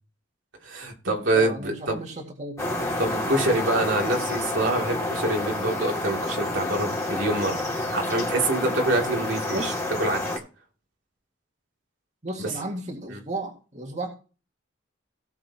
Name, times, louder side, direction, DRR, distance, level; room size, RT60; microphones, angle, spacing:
voice 1, 0.6-2.0 3.0-9.7 10.0-10.2 13.1-13.2, right 2 dB, 85° right, 2.7 m, -26 dB
voice 2, 1.3-2.9 9.5-9.8 12.2-14.1, right 2 dB, 40° right, 2.0 m, -34 dB
sound 1, 2.6-10.4, left 1 dB, 15° left, 2.4 m, -29 dB
17.0 x 6.9 x 2.9 m
head